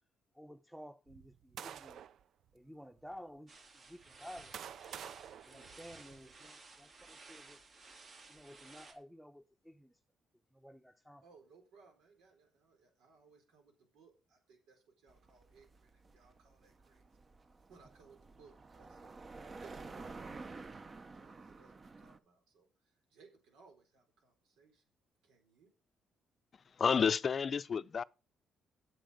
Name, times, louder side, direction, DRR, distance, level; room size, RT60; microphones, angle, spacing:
voice 1, 0.3-2.0 2.5-4.6 5.5-7.6 8.3-10.0 10.5-11.2, equal, ahead, 0.9 m, -53 dB
sound 1, 1.1-2.2 3.0-3.1 4.0-6.4, right 9 dB, 70° right, 0.5 m, -49 dB
sound 2, 3.5-8.9, right 3 dB, 50° right, 3.5 m, -56 dB
voice 2, 5.5-6.5 11.2-17.1 17.7-19.2 19.6-24.8 25.2-25.7, right 4 dB, 90° right, 4.3 m, -63 dB
sound 3, 15.1-22.2, right 3 dB, 35° right, 1.0 m, -51 dB
voice 3, 26.8-28.0, left 6 dB, 45° left, 0.5 m, -30 dB
9.0 x 8.1 x 6.5 m
cardioid pair, 90°, 0 cm